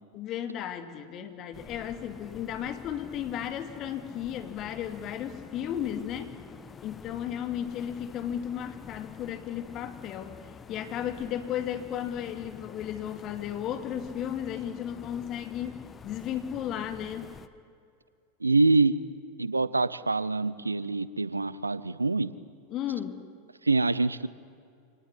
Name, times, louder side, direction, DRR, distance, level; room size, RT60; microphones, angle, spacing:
voice 1, 0.1-6.4 6.8-17.4 22.7-23.2, left 10 dB, 40° left, 8 dB, 2.5 m, -34 dB
sound 1, 1.5-17.5, left 6 dB, 20° left, 1.2 m, -48 dB
voice 2, 18.4-18.9 19.4-22.3 23.6-24.3, right 3 dB, 85° right, 18 dB, 0.8 m, -25 dB
26.5 x 19.0 x 10.0 m, 2.4 s
figure-of-eight pair, 90°, 0 cm